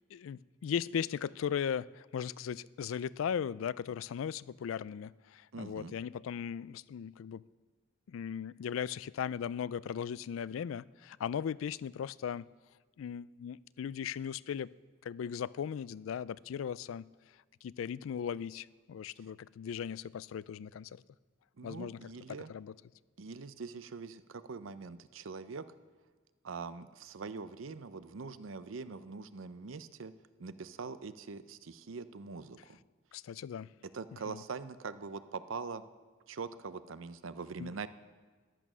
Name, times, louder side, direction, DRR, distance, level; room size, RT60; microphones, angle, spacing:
voice 1, 0.1-7.4 8.1-12.5 13.0-14.7 15.0-17.1 17.6-21.0 21.6-22.0 22.5-22.7 33.1-33.7 34.3-34.4 37.6-37.7, left 8 dB, 85° left, 20 dB, 0.3 m, -37 dB
voice 2, 5.5-5.9 21.6-22.5 23.2-25.6 26.4-30.1 30.4-32.8 33.9-35.8 36.3-37.9, right 4 dB, 80° right, 13 dB, 0.6 m, -43 dB
14.0 x 11.0 x 6.2 m, 1.4 s
head